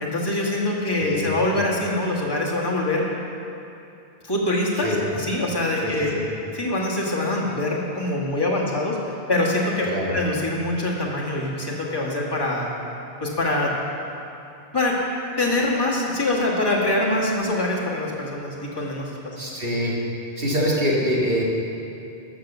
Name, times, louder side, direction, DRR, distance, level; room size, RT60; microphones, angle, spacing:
voice 1, 0.0-3.1 4.2-4.9 5.1-6.1 6.5-12.7 13.2-13.7 14.7-15.0 15.4-19.4, left 2 dB, 20° left, -4 dB, 1.7 m, -24 dB
voice 2, 1.0-1.3 4.8-5.0 5.8-6.2 9.9-10.1 19.4-19.9 20.4-21.4, equal, 55° right, -4 dB, 2.2 m, -24 dB
13.0 x 6.2 x 7.0 m, 2.7 s
omnidirectional pair, 1.2 m